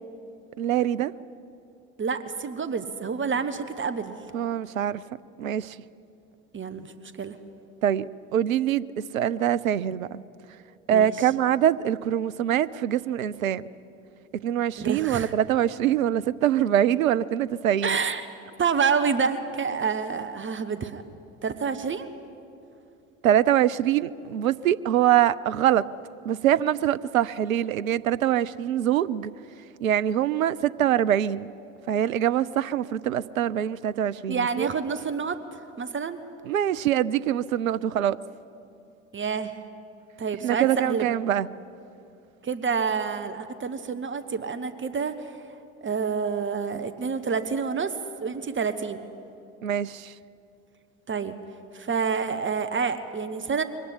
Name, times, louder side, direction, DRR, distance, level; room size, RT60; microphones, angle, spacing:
voice 1, 0.6-1.1 4.3-5.0 5.4-5.8 7.8-10.2 10.9-13.6 14.3-18.0 23.2-25.9 26.2-29.3 29.8-31.5 31.9-34.7 36.5-38.2 40.4-41.5 49.6-50.1, right 11 dB, 80° right, 16 dB, 0.6 m, -24 dB
voice 2, 2.0-4.1 6.5-7.3 10.9-11.3 14.8-15.3 17.8-18.3 18.6-21.0 21.4-22.1 34.3-35.4 35.8-36.2 39.1-39.5 40.2-41.1 42.4-45.4 45.8-48.0 48.2-49.0 51.1-51.3 51.7-53.6, right 5 dB, 30° right, 10 dB, 1.4 m, -28 dB
23.0 x 18.0 x 9.8 m, 2.6 s
figure-of-eight pair, 60°, 40 cm